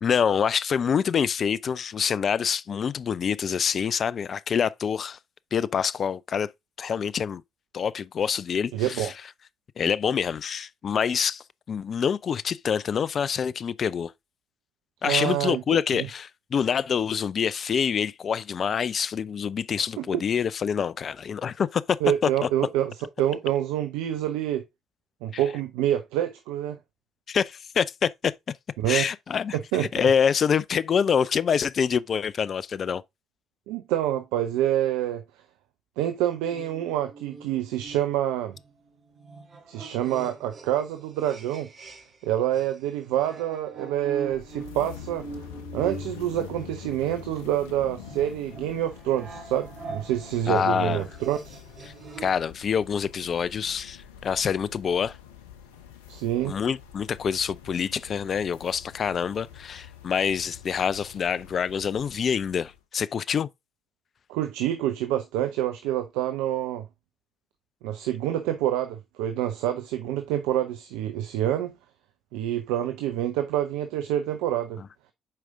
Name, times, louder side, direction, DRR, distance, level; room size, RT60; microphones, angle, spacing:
voice 1, 0.0-5.2 5.5-6.5 6.8-7.4 7.7-9.1 9.8-14.1 15.0-22.0 22.2-22.5 25.3-25.4 27.3-28.3 28.9-33.0 50.5-51.1 52.2-55.2 56.4-63.5, left 7 dB, 50° left, 0.4 m, -26 dB
voice 2, 8.7-9.1 15.0-15.6 15.9-16.1 20.0-20.1 22.0-22.9 23.2-24.6 25.2-26.8 28.8-29.0 29.5-29.9 33.7-35.2 36.0-38.5 39.7-41.7 42.2-45.3 45.7-51.6 56.1-56.6 64.3-66.8 67.8-71.7 72.3-74.8, right 12 dB, 75° right, 0.6 m, -27 dB
sound 1, 36.5-42.3 42.5-52.5, right 4 dB, 45° right, 2.6 m, -44 dB
sound 2, 44.3-62.8, left 9 dB, 80° left, 0.8 m, -45 dB
7.5 x 4.9 x 3.7 m
hypercardioid pair, 45°, 0 cm